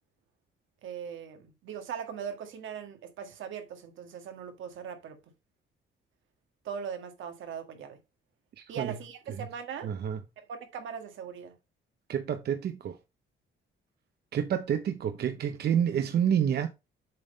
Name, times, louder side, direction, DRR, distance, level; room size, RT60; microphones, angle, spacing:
voice 1, 0.8-5.2 6.6-8.0 8.7-9.9 10.4-11.5, right 7 dB, 80° right, 1.6 m, -40 dB
voice 2, 8.6-9.0 9.8-10.2 12.1-13.0 14.3-16.7, right 8 dB, 55° right, 0.6 m, -28 dB
7.6 x 3.5 x 5.1 m
cardioid pair, 90°, 20 cm